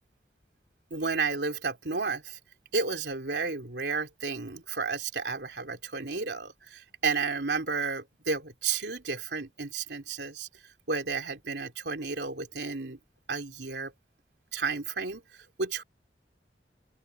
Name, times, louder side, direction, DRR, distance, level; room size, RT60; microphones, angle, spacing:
voice 1, 0.9-2.4 2.7-10.5 10.9-13.0 13.3-13.9 14.5-15.8, right 4 dB, 75° right, 3.2 m, -32 dB
open air
head